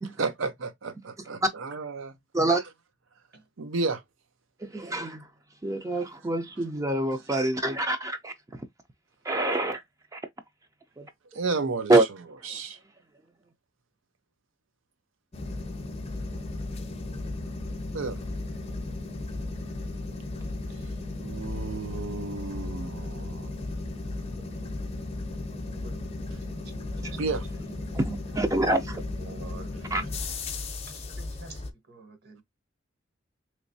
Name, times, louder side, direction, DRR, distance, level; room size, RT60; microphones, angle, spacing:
voice 1, 0.2-2.2 3.6-4.0 11.3-11.9 12.5-12.8 17.9-18.2 21.2-23.5 27.2-27.5, right 3 dB, 85° right, 0.6 m, -32 dB
voice 2, 4.6-5.3 5.6-8.3 9.2-9.8 10.1-10.2 11.0-11.1 11.9-12.0 27.9-29.0 29.9-30.0, right 2 dB, 15° right, 0.4 m, -25 dB
sound 1, 15.3-31.7, left 2 dB, 35° left, 0.6 m, -35 dB
voice 3, 26.8-27.2 27.7-27.9 29.2-29.7 30.9-32.4, right 3 dB, 55° right, 1.1 m, -47 dB
3.2 x 3.0 x 2.6 m
head